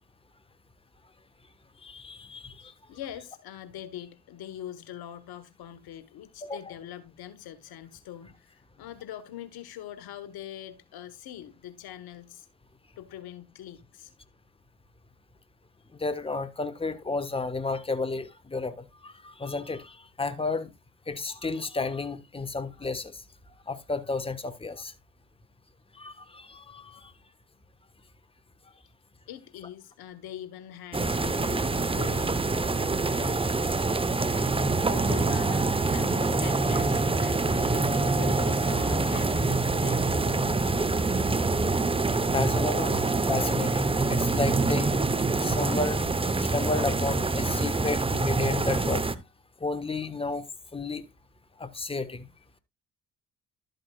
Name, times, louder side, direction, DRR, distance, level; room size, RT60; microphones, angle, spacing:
voice 1, 1.8-2.7 6.4-6.6 15.9-20.7 21.1-23.2 23.7-24.9 25.9-27.1 42.3-44.9 45.4-49.0 49.6-50.4 50.7-51.0 51.6-52.3, left 3 dB, 15° left, 1.2 m, -32 dB
voice 2, 2.6-12.5 13.0-14.1 29.3-32.4 33.2-33.4 34.9-40.6, left 11 dB, 65° left, 1.3 m, -43 dB
sound 1, 30.9-49.1, right 3 dB, 15° right, 0.8 m, -25 dB
12.0 x 7.9 x 2.3 m
hypercardioid pair, 50°, 39 cm